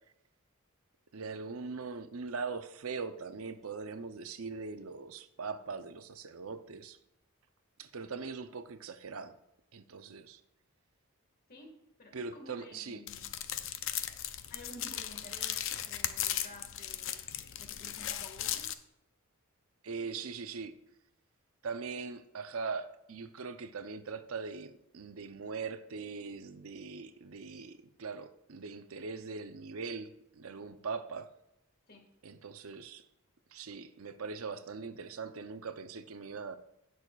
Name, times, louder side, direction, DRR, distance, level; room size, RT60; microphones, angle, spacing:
voice 1, 1.1-7.0 7.8-9.4 9.7-10.4 12.1-13.0 15.7-15.8 19.8-20.7 21.6-31.3 32.2-33.1 33.5-36.6, right 4 dB, 80° right, 10 dB, 0.7 m, -41 dB
voice 2, 11.5-13.3 14.5-17.3 17.6-18.7 31.9-32.1, left 1 dB, 45° left, 2 dB, 2.0 m, -52 dB
sound 1, 13.1-18.7, left 11 dB, 65° left, 0.6 m, -37 dB
17.5 x 6.4 x 2.4 m, 0.84 s
head